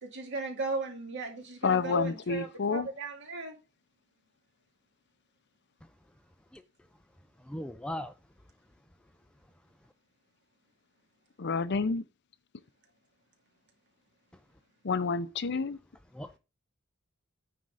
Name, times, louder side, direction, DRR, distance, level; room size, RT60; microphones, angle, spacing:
voice 1, 0.0-3.6, right 3 dB, 60° right, 2.2 m, -36 dB
voice 2, 1.6-2.9 11.4-12.0 14.8-15.8, left 4 dB, 55° left, 0.6 m, -29 dB
voice 3, 7.4-8.1 15.5-15.6 16.1-16.4, left 1 dB, 5° left, 0.4 m, -39 dB
9.4 x 3.8 x 6.3 m
head